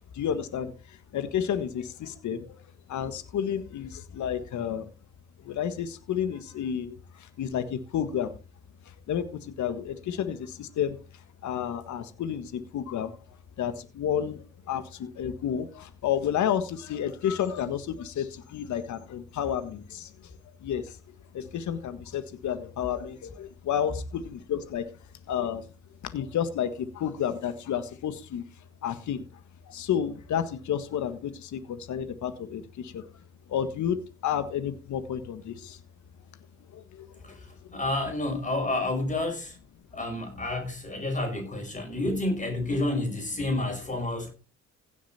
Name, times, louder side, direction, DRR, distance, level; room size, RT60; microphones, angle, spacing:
voice 1, 0.1-2.6 2.9-4.9 5.4-8.3 9.1-11.0 11.4-13.1 13.6-20.1 20.6-21.0 21.3-24.9 25.3-25.7 26.1-28.4 28.8-29.2 29.7-33.0 33.5-35.8 36.7-37.1 37.7-37.8, left 9 dB, 70° left, 1.7 m, -31 dB
voice 2, 37.2-39.6 39.9-44.3, left 2 dB, 25° left, 5.8 m, -30 dB
16.0 x 7.2 x 4.3 m
cardioid pair, 90°, 30 cm